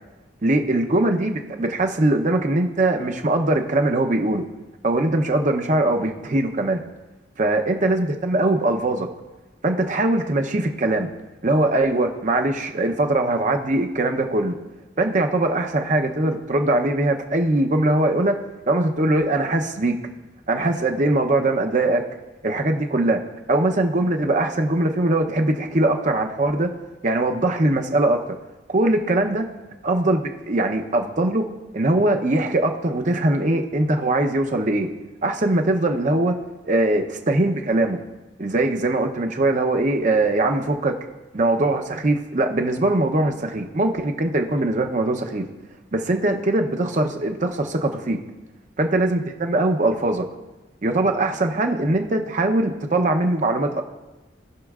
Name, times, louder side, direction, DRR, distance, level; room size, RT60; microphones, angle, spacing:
voice 1, 0.4-4.4 4.8-6.8 7.4-9.1 9.6-11.1 11.4-14.5 15.0-18.3 18.7-20.0 20.5-22.0 22.4-23.2 23.5-26.7 27.0-28.4 28.7-29.5 29.8-31.5 31.7-34.9 35.2-36.4 36.6-38.0 38.4-40.9 41.3-45.5 45.9-48.2 48.8-50.3 50.8-53.8, right 2 dB, 40° right, 4 dB, 0.7 m, -21 dB
18.5 x 6.3 x 2.4 m, 1.1 s
head